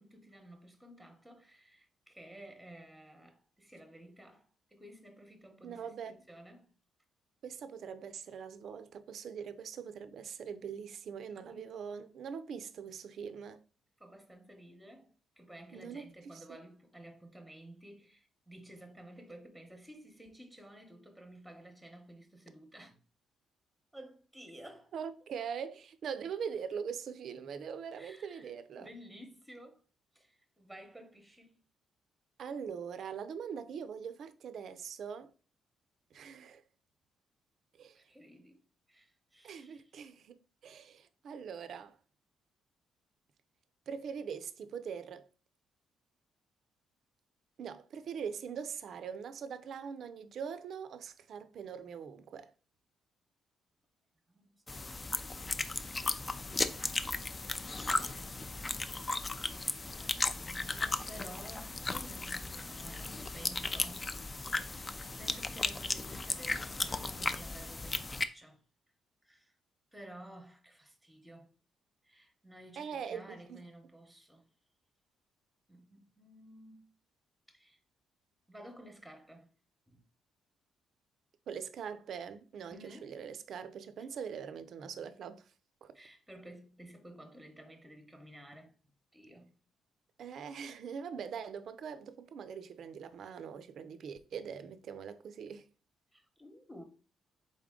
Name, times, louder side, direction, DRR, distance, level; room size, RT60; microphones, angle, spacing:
voice 1, 0.0-6.7 11.3-11.7 14.0-15.1 15.4-23.0 23.9-24.9 28.0-29.8 30.1-31.6 37.9-38.6 38.9-39.9 54.3-54.6 57.6-59.0 59.5-64.1 64.4-64.8 65.2-68.6 69.2-69.5 69.9-71.5 72.0-74.5 75.7-76.9 77.5-77.8 78.5-79.5 79.9-80.0 82.7-83.2 85.9-88.7 89.1-89.5 96.1-96.8, right 1 dB, ahead, 0.9 m, -53 dB
voice 2, 5.6-6.2 7.4-13.6 15.7-16.6 24.9-28.9 32.4-35.3 36.1-36.6 37.8-38.0 39.4-42.0 43.9-45.3 47.6-52.5 56.6-56.9 72.8-73.6 81.5-85.5 85.8-86.0 90.2-95.7, right 7 dB, 65° right, 0.4 m, -42 dB
sound 1, 54.7-68.2, left 3 dB, 25° left, 0.4 m, -36 dB
3.9 x 3.6 x 3.7 m
cardioid pair, 90°, 0 cm